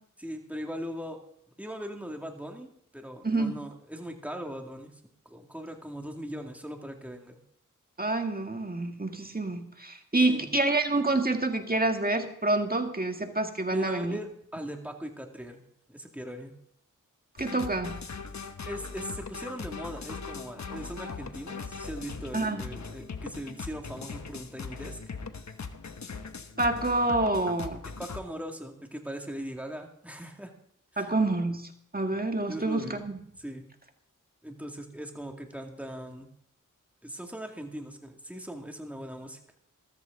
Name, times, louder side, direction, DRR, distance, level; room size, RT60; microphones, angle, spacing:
voice 1, 0.2-1.2 1.6-4.9 5.3-7.4 10.3-10.5 13.7-15.6 15.9-16.5 18.7-25.0 28.0-30.5 30.9-31.1 32.5-33.0 33.4-33.6 34.4-36.3 37.0-39.4, equal, 5° right, 2 dB, 2.3 m, -39 dB
voice 2, 3.2-3.6 8.0-14.2 17.4-17.9 22.3-22.6 26.6-27.8 31.0-33.2, right 2 dB, 30° right, 5 dB, 1.9 m, -27 dB
sound 1, 17.4-28.2, left 5 dB, 60° left, 1.0 m, -40 dB
14.5 x 13.5 x 3.9 m, 0.69 s
wide cardioid pair, 55°, 32 cm